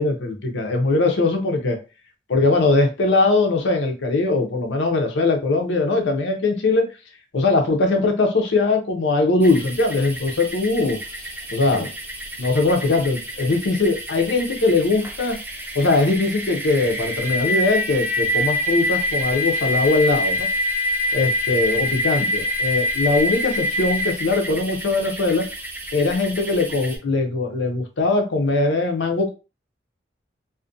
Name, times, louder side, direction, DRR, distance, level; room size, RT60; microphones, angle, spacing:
voice 1, 0.0-1.8 2.3-6.9 7.3-11.0 11.5-11.9 12.4-15.4 15.7-20.5 21.1-25.4 25.9-29.3, left 3 dB, 90° left, 4 dB, 0.6 m, -21 dB
sound 1, 9.4-27.0, left 1 dB, 10° right, 0.5 m, -26 dB
2.5 x 2.1 x 2.5 m, 0.31 s
head